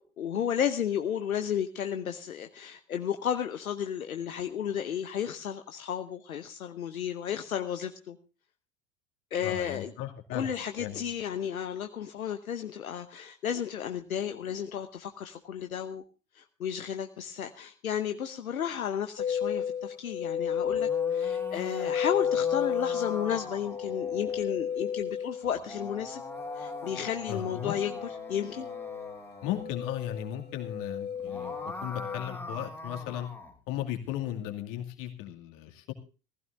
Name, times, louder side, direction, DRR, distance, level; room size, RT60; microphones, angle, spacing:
voice 1, 0.2-8.2 9.3-9.9 10.3-16.0 16.3-26.2 26.6-28.0 28.3-28.7, left 9 dB, 75° left, 7 dB, 1.0 m, -33 dB
voice 2, 9.4-10.5 10.8-11.0 27.3-27.7 29.4-33.3 33.7-35.9, left 11 dB, 50° left, 4 dB, 2.5 m, -36 dB
sound 1, 19.2-32.2, left 8 dB, 25° left, 1.6 m, -33 dB
sound 2, 20.6-24.4 25.4-29.6 31.1-33.6, left 2 dB, 5° left, 2.8 m, -43 dB
19.5 x 15.5 x 2.6 m, 0.33 s
figure-of-eight pair, 75°, 42 cm